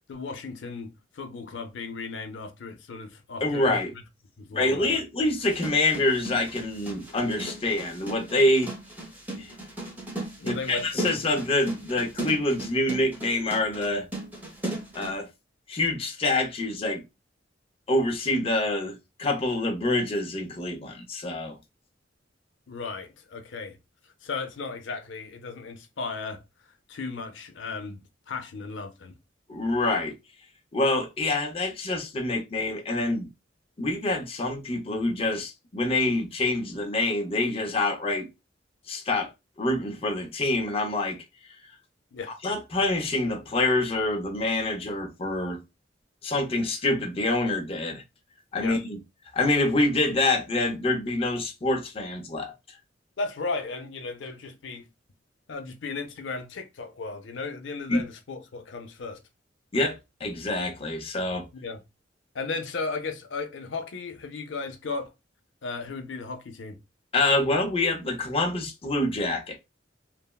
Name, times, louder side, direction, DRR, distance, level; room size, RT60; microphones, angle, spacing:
voice 1, 0.1-3.7 4.4-5.0 10.4-11.1 22.7-23.8 24.2-26.4 26.9-29.1 42.1-42.3 48.6-48.8 53.2-54.9 55.5-59.2 61.5-61.8 62.3-65.1 65.6-66.8, left 4 dB, 80° left, 0.5 m, -35 dB
voice 2, 3.4-3.9 4.5-8.7 9.3-9.5 10.4-14.1 14.9-15.3 15.7-17.0 17.9-21.6 29.5-30.2 30.7-33.3 33.8-38.3 38.9-39.3 39.6-41.2 42.4-45.6 46.2-48.0 48.5-49.0 49.3-52.5 57.9-58.0 59.7-61.5 67.1-69.6, left 2 dB, 30° left, 0.6 m, -26 dB
sound 1, 5.4-15.1, right 1 dB, 10° right, 0.7 m, -37 dB
3.3 x 2.0 x 2.2 m
head